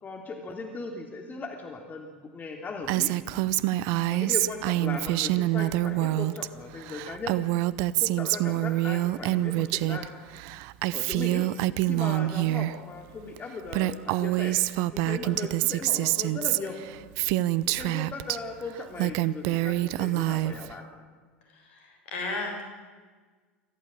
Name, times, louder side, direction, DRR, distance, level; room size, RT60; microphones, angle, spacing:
voice 1, 0.0-3.1 4.1-7.4 8.0-10.1 10.9-11.5 11.9-14.6 14.9-16.8 17.6-20.8, left 4 dB, 30° left, 2 dB, 3.2 m, -38 dB
Female speech woman speaking, 2.9-6.5 6.7-10.1 10.3-12.7 13.4-13.5 13.7-18.4 18.8-20.7, right 17 dB, 60° right, 0.7 m, -26 dB
voice 2, 21.5-22.6, left 3 dB, 70° left, 3 dB, 6.9 m, -34 dB
25.0 x 14.5 x 8.9 m, 1.5 s
hypercardioid pair, 80°, 6 cm